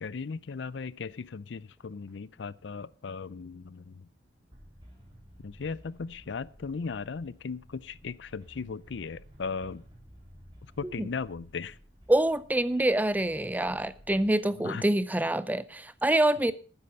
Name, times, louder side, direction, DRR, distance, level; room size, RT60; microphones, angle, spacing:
voice 1, 0.0-4.1 5.4-9.8 10.8-11.8 14.5-14.9, left 5 dB, 70° left, 0.5 m, -37 dB
sound 1, 4.5-14.3, equal, 25° right, 4.1 m, -54 dB
voice 2, 12.1-16.5, right 1 dB, 10° right, 0.5 m, -26 dB
12.5 x 9.7 x 5.5 m
head